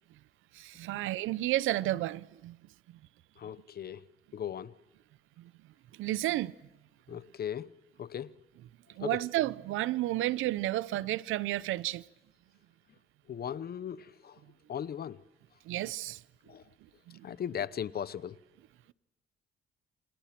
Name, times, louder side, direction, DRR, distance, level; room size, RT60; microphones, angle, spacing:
voice 1, 0.5-2.6 5.4-5.5 5.9-6.5 9.0-12.0 15.7-16.2 17.1-17.3, right 16 dB, 90° right, 0.8 m, -32 dB
voice 2, 3.4-4.1 4.3-4.7 7.1-8.3 9.0-9.2 13.3-14.4 14.7-15.2 16.5-16.6 17.2-18.4, left 9 dB, 50° left, 0.9 m, -38 dB
29.0 x 26.5 x 6.0 m
cardioid pair, 90°, 20 cm